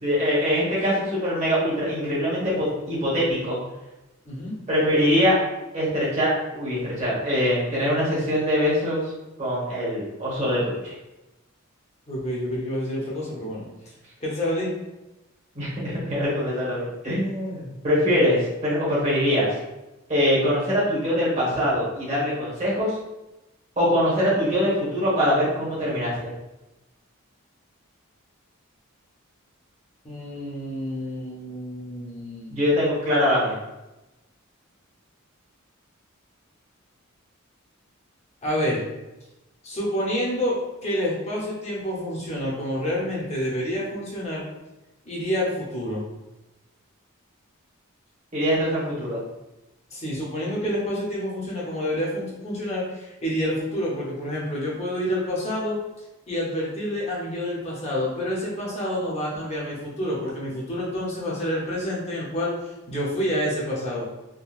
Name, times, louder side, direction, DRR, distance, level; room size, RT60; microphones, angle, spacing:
voice 1, 0.0-3.6 4.7-5.4 5.7-9.0 9.4-10.9 15.5-19.5 20.1-23.0 23.8-26.3 32.5-33.6 48.3-49.2, equal, 30° right, -7 dB, 1.2 m, -23 dB
voice 2, 4.3-4.6 12.1-13.7 14.2-14.7 30.0-32.6 38.4-38.8 39.6-44.4 45.1-46.0 49.9-55.8 56.3-64.1, equal, 30° left, -5 dB, 0.8 m, -28 dB
3.7 x 2.2 x 2.4 m, 1.0 s
head